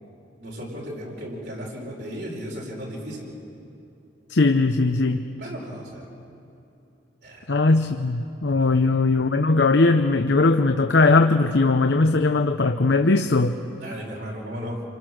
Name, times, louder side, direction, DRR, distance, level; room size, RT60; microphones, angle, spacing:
voice 1, 0.4-3.3 5.4-6.1 7.2-7.5 8.6-8.7 13.8-14.8, equal, 75° right, -3 dB, 5.2 m, -35 dB
voice 2, 4.3-5.2 7.5-13.6, left 3 dB, 80° left, 6 dB, 0.8 m, -19 dB
27.5 x 25.0 x 6.3 m, 2.9 s
head